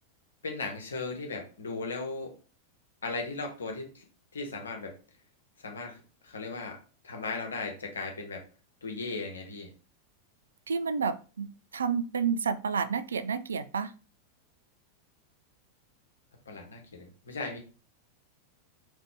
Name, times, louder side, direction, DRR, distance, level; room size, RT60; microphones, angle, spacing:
voice 1, 0.4-2.3 3.0-4.0 4.3-5.0 5.6-8.4 8.8-9.7 16.5-17.6, left 3 dB, 70° left, 1.1 m, -37 dB
voice 2, 10.7-13.9, right 6 dB, 70° right, 0.3 m, -30 dB
4.0 x 3.2 x 3.3 m
figure-of-eight pair, 90°, 0 cm